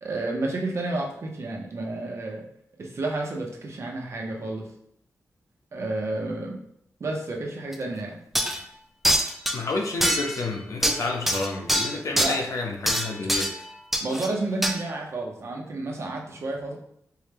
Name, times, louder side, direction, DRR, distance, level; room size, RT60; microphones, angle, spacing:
voice 1, 0.0-2.4 2.8-4.7 5.7-6.6 7.0-8.2 12.1-12.4 14.0-16.8, right 2 dB, 50° right, 0 dB, 0.7 m, -30 dB
sound 1, 7.7-7.8 8.3-8.6 9.0-9.6 10.0-10.5 10.8-12.4 12.9-13.6 13.9-14.3 14.6-14.7, equal, 5° right, 0.3 m, -24 dB
voice 2, 9.5-13.7, left 3 dB, 60° left, 3 dB, 0.6 m, -30 dB
4.5 x 2.2 x 3.3 m, 0.70 s
wide cardioid pair, 135°, 6 cm